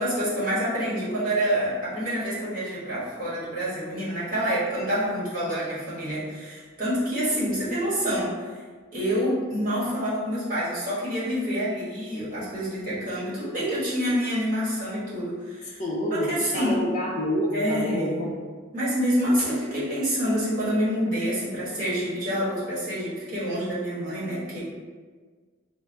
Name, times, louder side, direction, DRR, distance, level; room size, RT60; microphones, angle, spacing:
voice 1, 0.0-8.5 8.9-15.8 16.1-16.8 17.5-18.3 18.7-24.6, equal, 45° right, -9 dB, 1.4 m, -27 dB
voice 2, 15.8-18.6, equal, 35° left, -4 dB, 0.6 m, -28 dB
3.5 x 2.0 x 4.2 m, 1.5 s
head